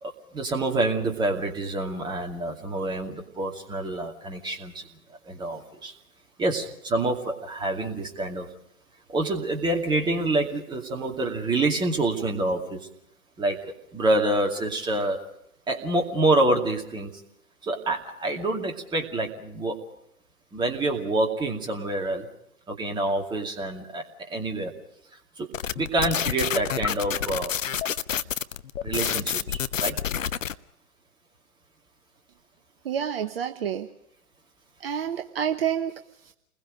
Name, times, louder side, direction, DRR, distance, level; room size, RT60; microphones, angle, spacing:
voice 1, 0.0-4.9 5.2-5.9 6.4-8.5 9.1-12.9 13.4-15.2 15.7-17.2 17.6-19.8 20.5-22.3 22.7-24.7 25.4-25.5 25.7-27.5 28.8-30.0, right 2 dB, 10° right, 2 dB, 2.4 m, -27 dB
sound 1, 25.5-30.5, left 8 dB, 60° left, 0.9 m, -28 dB
voice 2, 32.8-33.9 34.8-36.3, right 8 dB, 40° right, 8 dB, 1.0 m, -29 dB
29.0 x 21.0 x 5.0 m, 0.75 s
figure-of-eight pair, 120°, 44 cm